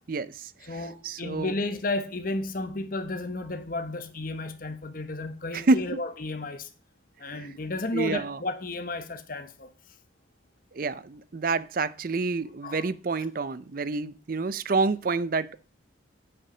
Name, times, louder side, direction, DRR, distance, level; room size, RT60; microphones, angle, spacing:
voice 1, 0.1-1.5 5.5-6.0 7.4-7.5 7.9-8.4 10.7-15.6, right 3 dB, 45° right, 0.5 m, -28 dB
voice 2, 0.6-6.7 7.2-9.7 12.1-12.2 12.6-12.9, left 2 dB, 45° left, 1.0 m, -33 dB
8.6 x 5.6 x 6.1 m
head